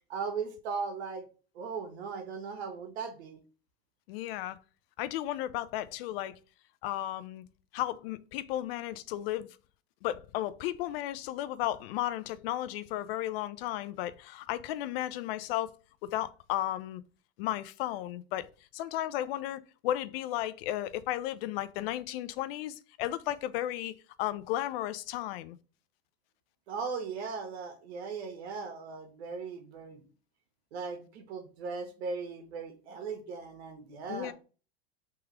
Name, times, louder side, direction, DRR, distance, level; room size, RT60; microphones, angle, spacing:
voice 1, 0.1-1.3 1.5-3.4 26.7-30.0 30.7-34.3, right 5 dB, 75° right, 1.4 m, -38 dB
voice 2, 4.1-4.6 5.0-6.4 6.8-7.4 7.7-9.6 10.0-15.7 16.0-17.0 17.4-18.5 18.7-25.6 34.1-34.3, left 13 dB, 60° left, 0.5 m, -34 dB
3.6 x 3.0 x 4.7 m
supercardioid pair, 125°, 33 cm